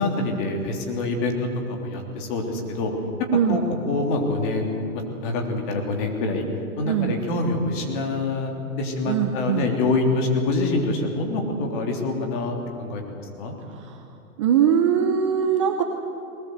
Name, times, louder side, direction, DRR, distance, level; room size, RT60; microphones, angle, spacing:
voice 1, 0.0-1.4 1.7-2.9 3.5-3.6 3.9-6.4 6.8-13.5, left 2 dB, 35° left, 2 dB, 3.3 m, -26 dB
voice 2, 3.3-3.7 6.9-7.2 9.1-9.7 13.7-14.0 14.4-15.8, right 8 dB, 20° right, 5 dB, 0.6 m, -21 dB
20.5 x 19.5 x 8.1 m, 2.8 s
hypercardioid pair, 155°, 45 cm